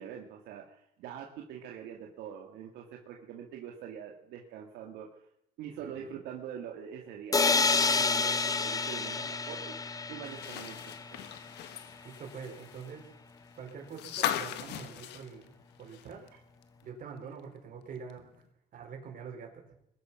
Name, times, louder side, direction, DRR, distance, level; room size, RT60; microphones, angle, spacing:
voice 1, 0.0-5.2 5.6-9.7 10.1-10.9, right 8 dB, 85° right, 0 dB, 2.1 m, -44 dB
voice 2, 5.8-6.2 12.0-13.1 13.6-16.2 16.8-18.4 18.7-19.6, right 6 dB, 55° right, 1 dB, 5.1 m, -45 dB
sound 1, 7.3-11.1, left 4 dB, 20° left, 0.9 m, -29 dB
sound 2, 10.2-16.3 16.6-16.7 18.1-18.2, left 11 dB, 80° left, 1.4 m, -38 dB
21.5 x 11.5 x 5.9 m, 0.79 s
cardioid pair, 110°, 17 cm